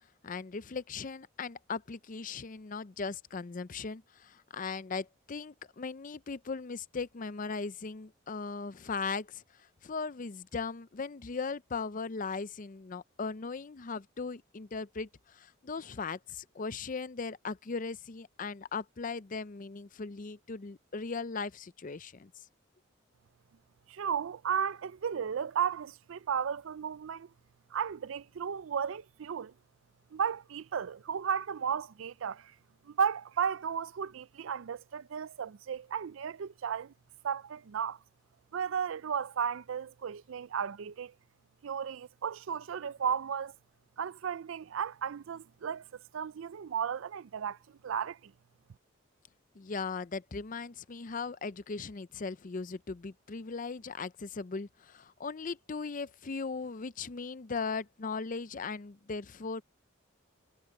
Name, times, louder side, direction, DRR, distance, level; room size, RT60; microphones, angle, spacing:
voice 1, 0.2-22.3 49.6-59.6, left 4 dB, 40° left, 0.5 m, -38 dB
voice 2, 23.9-27.3 27.7-29.5 30.1-32.5 32.9-36.9 37.2-38.0 38.5-41.1 41.6-43.5 44.0-45.8 46.1-47.6 47.8-48.3, right 7 dB, 75° right, 0.4 m, -34 dB
head